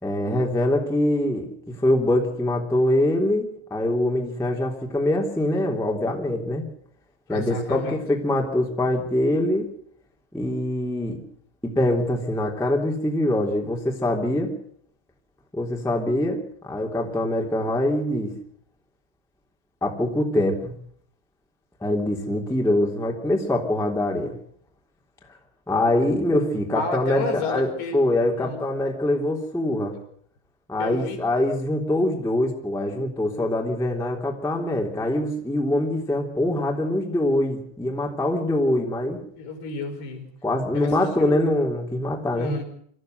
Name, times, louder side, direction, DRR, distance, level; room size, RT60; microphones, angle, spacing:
voice 1, 0.0-6.6 7.3-9.7 10.3-11.2 11.6-14.5 15.5-18.3 19.8-20.7 21.8-24.3 25.7-29.9 30.7-39.2 40.4-42.5, left 1 dB, ahead, 1 dB, 2.3 m, -24 dB
voice 2, 7.3-8.0 26.7-28.0 28.4-28.6 30.8-31.2 39.4-40.2 40.7-40.9 41.2-41.6 42.3-42.6, left 3 dB, 65° left, 4 dB, 6.1 m, -31 dB
25.5 x 14.5 x 7.9 m, 0.64 s
omnidirectional pair, 5.1 m